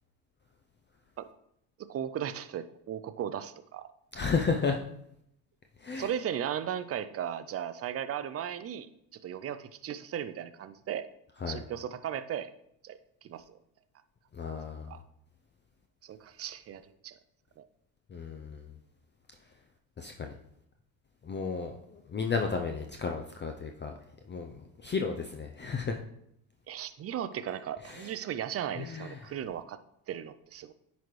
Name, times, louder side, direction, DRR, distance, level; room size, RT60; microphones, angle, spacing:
voice 1, 1.9-3.9 6.0-11.1 11.5-12.5 12.8-13.6 14.9-15.0 16.0-17.2 17.6-17.7 26.7-29.8 30.1-30.7, right 9 dB, 30° right, 13 dB, 0.5 m, -36 dB
voice 2, 4.1-4.8 5.8-6.1 11.4-11.6 14.3-14.9 18.1-18.7 20.0-20.3 21.2-23.9 24.3-26.0 27.9-28.1 28.8-29.2, left 5 dB, 25° left, 4 dB, 0.6 m, -33 dB
10.0 x 4.1 x 3.2 m, 0.75 s
hypercardioid pair, 75°, 47 cm